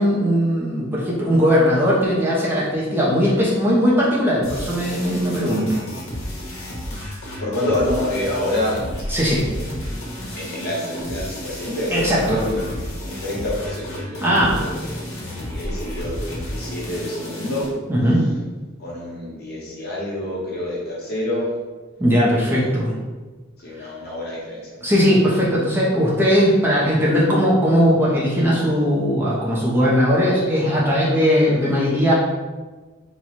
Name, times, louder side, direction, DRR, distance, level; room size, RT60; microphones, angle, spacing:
voice 1, 0.0-5.8 9.1-9.4 11.9-12.4 14.2-14.6 17.9-18.2 22.0-22.9 24.8-32.1, equal, 10° right, -7 dB, 0.7 m, -18 dB
sound 1, 4.4-17.7, left 1 dB, 75° left, 1.2 m, -31 dB
voice 2, 7.4-9.7 10.3-12.7 13.0-14.2 14.5-17.7 18.8-21.5 22.5-22.7 23.6-24.8, left 1 dB, 55° left, -6 dB, 1.2 m, -27 dB
3.0 x 2.3 x 4.0 m, 1.3 s
head